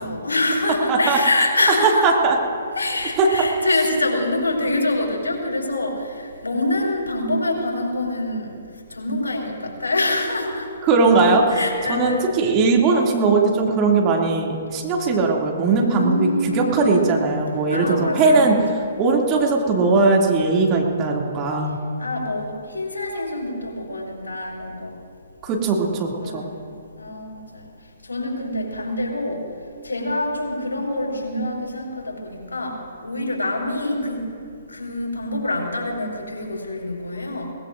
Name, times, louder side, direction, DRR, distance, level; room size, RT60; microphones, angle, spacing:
voice 1, 0.0-2.1 2.8-8.6 8.9-10.7 11.5-12.3 15.8-17.2 17.7-18.9 22.0-24.9 26.2-26.7 27.0-27.7 28.0-29.4 29.8-34.2 34.7-37.5, left 2 dB, 80° left, -1 dB, 4.4 m, -25 dB
voice 2, 0.9-1.2 2.0-2.4 3.2-3.5 10.8-11.6 11.9-16.3 16.5-18.6 19.0-21.8 25.4-26.4, right 3 dB, 30° right, -1 dB, 2.5 m, -19 dB
22.0 x 19.5 x 2.6 m, 2.3 s
figure-of-eight pair, 130°, 0 cm